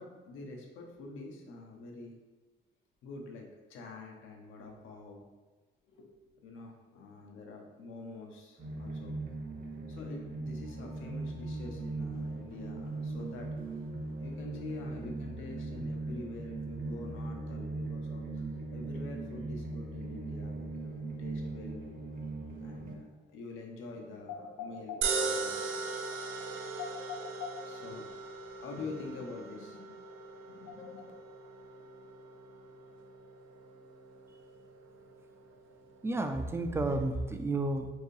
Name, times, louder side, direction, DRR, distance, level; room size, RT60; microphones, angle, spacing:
voice 1, 0.0-2.2 3.0-5.2 5.9-9.2 9.8-13.6 14.2-21.8 22.3-25.8 26.4-28.2 28.6-30.0 30.5-31.1, left 3 dB, 85° left, 1 dB, 0.8 m, -46 dB
sound 1, 8.6-23.0, right 2 dB, 45° right, 0.8 m, -39 dB
sound 2, 25.0-37.4, right 4 dB, 80° right, 0.5 m, -40 dB
voice 2, 36.0-37.9, right 2 dB, 15° right, 6 dB, 0.4 m, -31 dB
4.6 x 2.7 x 3.2 m, 1.3 s
cardioid pair, 90°, 20 cm